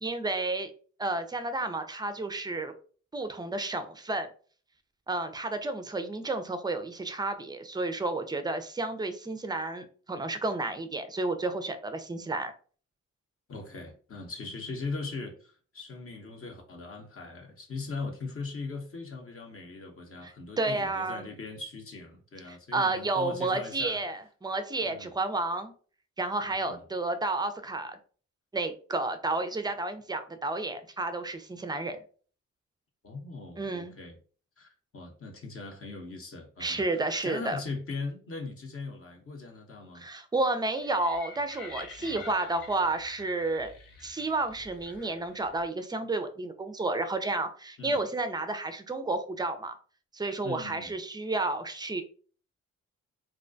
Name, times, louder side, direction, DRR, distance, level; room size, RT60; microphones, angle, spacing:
voice 1, 0.0-0.7 1.0-2.7 3.1-4.3 5.1-12.5 20.2-21.3 22.5-25.7 26.2-28.0 28.5-32.0 33.6-33.9 36.6-37.6 39.9-43.7 44.0-49.8 50.1-52.0, right 2 dB, 15° right, 9 dB, 0.4 m, -31 dB
voice 2, 13.5-24.0 24.8-25.1 26.6-26.8 33.0-34.2 34.6-40.1 42.0-42.2 47.8-48.0 50.4-50.9, left 3 dB, 40° left, 3 dB, 0.7 m, -40 dB
sound 1, 40.8-45.6, left 3 dB, 80° left, 0.7 m, -48 dB
2.4 x 2.1 x 2.5 m, 0.42 s
supercardioid pair, 55°, 33 cm